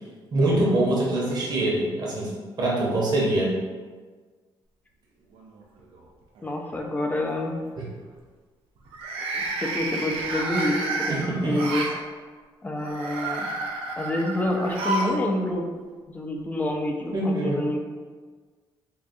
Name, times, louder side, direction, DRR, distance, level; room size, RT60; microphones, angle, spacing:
voice 1, 0.3-2.3 2.6-3.6 11.1-11.6 17.1-17.7, right 1 dB, 50° right, -4 dB, 0.8 m, -24 dB
sound 1, 5.4-6.0 6.4-6.8 8.8-12.0 12.8-15.2 15.5-15.6 16.7-16.8, right 2 dB, 85° right, 0.5 m, -30 dB
voice 2, 6.4-7.5 9.3-11.1 11.4-11.9 12.6-13.5 14.0-15.7 16.1-17.8, left 1 dB, 15° left, 1 dB, 0.4 m, -27 dB
3.7 x 2.2 x 2.6 m, 1.5 s
cardioid pair, 110°, 9 cm